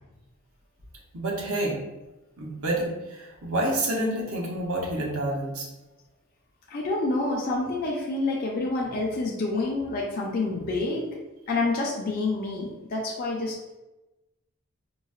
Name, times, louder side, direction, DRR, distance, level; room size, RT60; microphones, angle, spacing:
voice 1, 1.1-1.8 2.4-5.7, right 1 dB, 90° right, -2 dB, 0.7 m, -28 dB
voice 2, 6.7-11.1 11.5-13.6, left 2 dB, 45° left, -2 dB, 0.4 m, -28 dB
3.9 x 2.0 x 2.3 m, 1.0 s
head